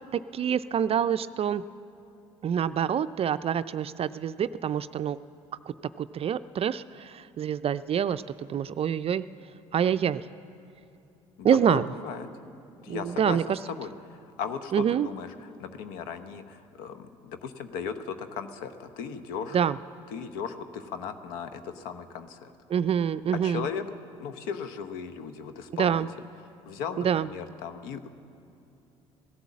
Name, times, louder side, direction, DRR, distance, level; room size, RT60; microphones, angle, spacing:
voice 1, 0.1-1.6 2.4-5.2 6.0-9.3 9.7-10.2 11.4-11.9 12.9-13.6 14.7-15.1 19.5-19.8 22.7-23.7 25.7-26.1 27.0-27.3, right 8 dB, 40° right, 14 dB, 0.4 m, -26 dB
voice 2, 11.4-12.3 12.8-13.4 13.7-19.6 20.1-22.5 23.4-23.8 24.2-26.0 26.7-28.1, left 7 dB, 70° left, 10 dB, 0.9 m, -37 dB
16.5 x 11.5 x 7.3 m, 2.7 s
hypercardioid pair, 55°, 16 cm